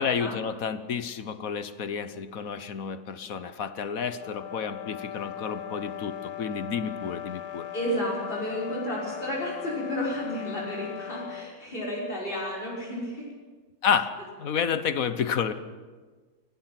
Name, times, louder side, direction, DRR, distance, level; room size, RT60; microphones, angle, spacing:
voice 1, 0.0-7.7 13.8-14.1 14.4-15.5, left 7 dB, 65° left, 11 dB, 1.4 m, -30 dB
sound 1, 4.0-11.5, left 12 dB, 80° left, 1.5 m, -39 dB
voice 2, 7.7-13.3, equal, 35° left, -6 dB, 6.1 m, -32 dB
25.5 x 18.0 x 5.9 m, 1.4 s
omnidirectional pair, 1.7 m